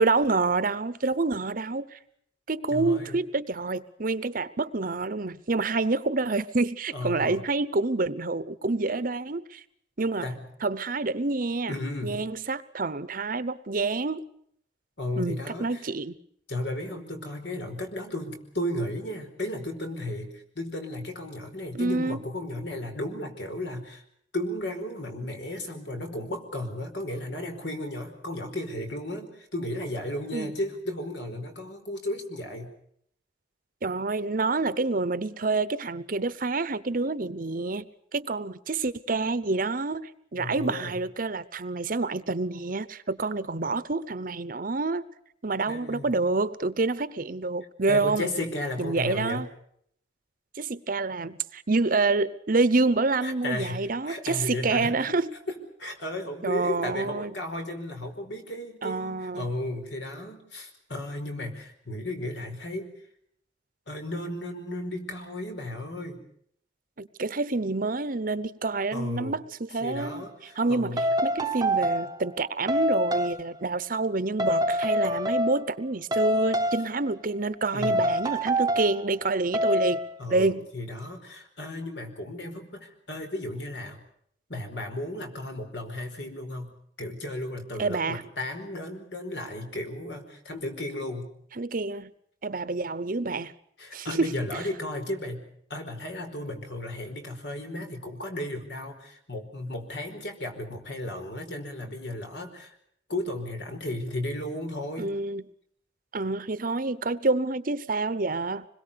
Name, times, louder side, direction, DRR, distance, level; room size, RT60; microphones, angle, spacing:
voice 1, 0.0-2.0 2.5-9.6 10.0-10.3 10.6-11.8 12.0-14.2 15.2-16.2 21.7-22.2 30.3-30.5 33.8-45.0 45.4-48.3 48.8-49.5 50.6-55.3 56.4-57.3 58.8-59.5 67.0-70.2 70.6-80.0 80.3-80.7 87.8-88.2 91.6-92.1 92.4-93.5 93.9-94.3 105.0-105.4 106.1-108.7, right 3 dB, 50° right, 0.9 m, -27 dB
voice 2, 2.7-3.2 6.9-7.4 10.2-10.4 11.7-12.2 15.0-15.9 16.5-24.0 24.3-32.7 40.4-41.0 45.7-46.2 47.9-49.5 53.2-55.2 55.5-62.9 63.9-66.2 68.9-69.4 69.8-71.1 77.7-78.1 80.2-84.0 84.5-91.3 93.8-102.8 103.1-105.1, left 1 dB, 70° left, 4.8 m, -34 dB
sound 1, 70.0-70.1 71.0-72.2 72.7-73.4 74.4-75.8 76.1-77.0 77.8-79.0 79.5-80.1, equal, 20° right, 0.9 m, -26 dB
26.0 x 21.5 x 6.9 m
head